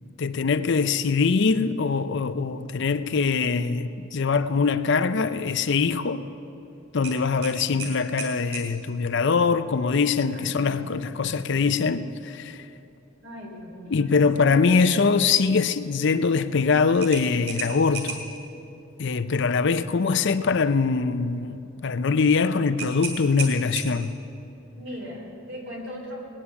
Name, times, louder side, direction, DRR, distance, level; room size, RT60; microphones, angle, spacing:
voice 1, 0.2-6.2 6.9-12.7 13.9-18.2 19.0-24.2, left 5 dB, 60° left, 0.5 m, -23 dB
sound 1, 7.0-8.7 11.3-11.6 12.0-12.1 17.0-18.4 22.8-24.2, right 4 dB, 30° right, 2.9 m, -34 dB
voice 2, 10.3-11.8 13.2-15.2 24.8-26.2, equal, 65° right, 4.2 m, -40 dB
19.5 x 9.9 x 7.0 m
head